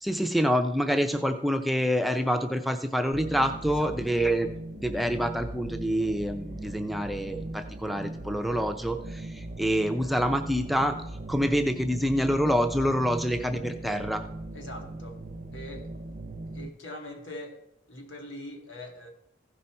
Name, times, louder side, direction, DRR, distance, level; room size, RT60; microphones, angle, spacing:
voice 1, 0.0-11.0 11.3-14.2, equal, ahead, 6 dB, 0.4 m, -27 dB
sound 1, 3.1-16.7, right 2 dB, 45° right, 0.6 m, -39 dB
voice 2, 14.5-15.2 15.5-15.9 16.5-17.6 17.9-19.1, left 1 dB, 90° left, 2 dB, 2.0 m, -42 dB
15.0 x 5.5 x 4.4 m, 0.79 s
head